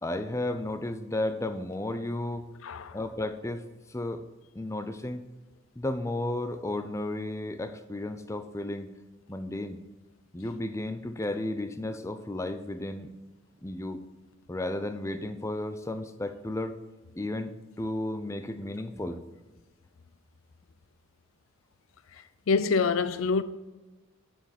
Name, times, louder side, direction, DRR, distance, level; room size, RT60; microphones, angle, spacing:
voice 1, 0.0-2.4 2.9-3.6 3.9-4.2 4.5-5.2 5.8-8.9 9.3-9.8 10.3-13.1 13.6-14.0 14.5-16.8 17.2-17.5 17.8-19.2, left 1 dB, 15° left, 0.5 m, -33 dB
voice 2, 22.5-23.4, left 4 dB, 75° left, 0.5 m, -25 dB
7.2 x 6.1 x 7.1 m
head